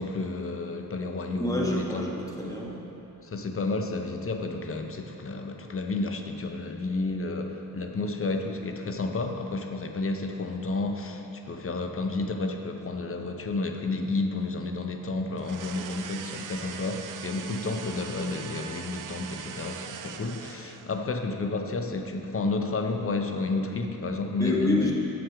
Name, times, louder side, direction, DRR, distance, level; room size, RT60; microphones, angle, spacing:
voice 1, 0.0-2.0 3.2-24.8, left 3 dB, 35° left, 4 dB, 0.7 m, -31 dB
voice 2, 1.4-2.8 24.4-24.9, left 1 dB, 10° left, -2 dB, 1.2 m, -28 dB
sound 1, 15.4-21.0, right 8 dB, 55° right, 0.4 m, -41 dB
7.3 x 6.0 x 4.8 m, 2.9 s
cardioid pair, 80°, 39 cm